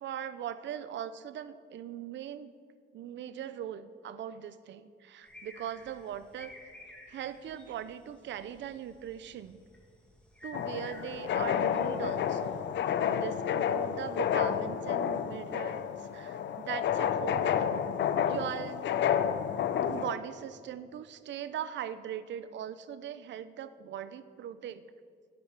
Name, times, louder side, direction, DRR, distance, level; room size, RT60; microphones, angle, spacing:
voice 1, 0.0-2.5 2.9-6.5 7.1-9.6 10.4-12.6 13.1-17.4 18.2-18.9 19.9-24.8, right 10 dB, 65° right, 14 dB, 0.6 m, -40 dB
sound 1, 5.2-12.6, left 1 dB, 5° left, 2.2 m, -54 dB
sound 2, 10.5-20.1, left 8 dB, 65° left, 0.6 m, -30 dB
10.5 x 8.8 x 5.9 m, 2.1 s
cardioid pair, 90°, 20 cm